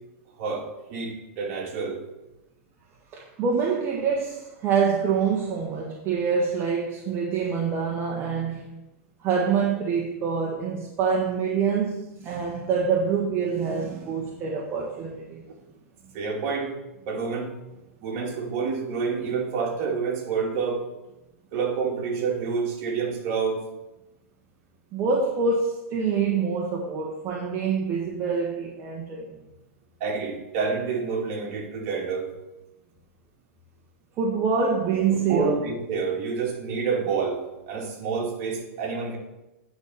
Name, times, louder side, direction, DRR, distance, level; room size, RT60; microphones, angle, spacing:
voice 1, 0.4-2.0 16.1-16.7 17.1-17.5 18.0-20.8 21.5-23.6 30.0-32.3 35.1-37.4 37.7-39.2, right 5 dB, 45° right, 2.5 m, -28 dB
voice 2, 3.1-8.7 9.2-15.4 24.9-29.3 34.2-35.6, right 5 dB, 30° right, 1.4 m, -26 dB
9.6 x 4.1 x 7.1 m
hypercardioid pair, 135°, 8 cm